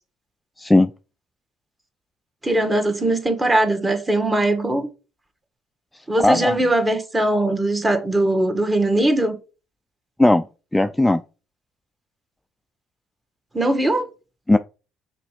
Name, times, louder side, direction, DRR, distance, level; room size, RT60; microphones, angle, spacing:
voice 1, 0.6-0.9 6.2-6.6 10.2-10.5 10.7-11.2 14.5-14.6, left 1 dB, 10° left, 0.4 m, -16 dB
voice 2, 2.4-4.9 6.1-9.4 13.5-14.0, right 1 dB, 20° right, 1.6 m, -20 dB
5.8 x 3.8 x 5.0 m
supercardioid pair, 65°, 0 cm